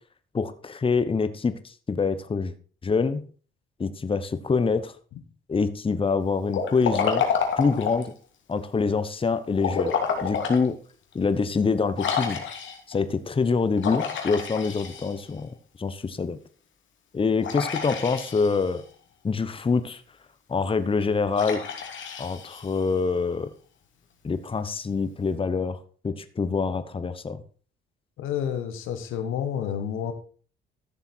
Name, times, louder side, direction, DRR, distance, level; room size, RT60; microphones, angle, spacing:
voice 1, 0.3-2.5 2.8-3.2 3.8-4.9 5.5-7.2 7.6-8.1 8.5-9.9 10.2-10.8 11.1-12.4 12.9-15.5 15.8-16.4 17.1-18.8 19.2-20.0 20.5-21.6 22.2-23.5 24.2-25.8 26.0-27.4, left 4 dB, 25° left, 12 dB, 1.0 m, -25 dB
Liquid, 6.5-8.1 9.6-10.6 11.1-11.2 12.0-12.9 13.8-15.4 17.4-18.8 21.3-23.0, left 6 dB, 70° left, 2.7 m, -29 dB
voice 2, 28.2-30.1, left 9 dB, 90° left, 9 dB, 1.5 m, -29 dB
13.5 x 7.0 x 4.5 m, 0.41 s
cardioid pair, 90°, 20 cm